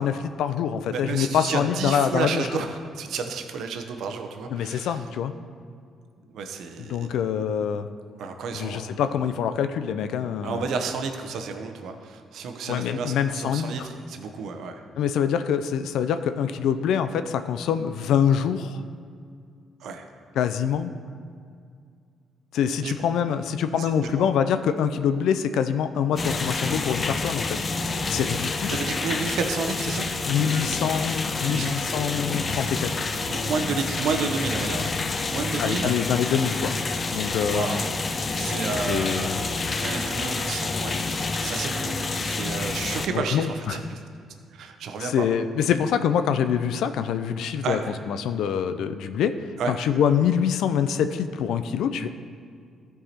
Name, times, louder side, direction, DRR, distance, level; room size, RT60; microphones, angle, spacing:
voice 1, 0.0-2.5 4.5-5.3 6.9-7.9 8.5-10.7 12.7-13.9 15.0-18.8 20.4-20.9 22.5-27.5 28.1-28.8 30.3-32.9 35.6-36.7 37.1-37.8 38.9-39.4 43.1-43.8 45.0-47.8 48.1-49.3 49.7-52.1, left 8 dB, 80° left, 10 dB, 0.4 m, -25 dB
voice 2, 0.8-5.0 6.3-7.2 8.2-8.8 10.4-14.8 19.8-20.1 22.8-22.9 23.8-24.2 28.3-28.4 28.7-30.1 30.4-30.7 31.4-31.8 33.3-35.9 37.5-37.9 38.3-44.0 44.5-45.3 47.6-47.9 49.6-49.7, right 5 dB, 75° right, 6 dB, 0.8 m, -31 dB
sound 1, 26.2-43.1, left 3 dB, 35° left, 0.6 m, -28 dB
14.0 x 4.7 x 4.3 m, 2.2 s
cardioid pair, 90°, 0 cm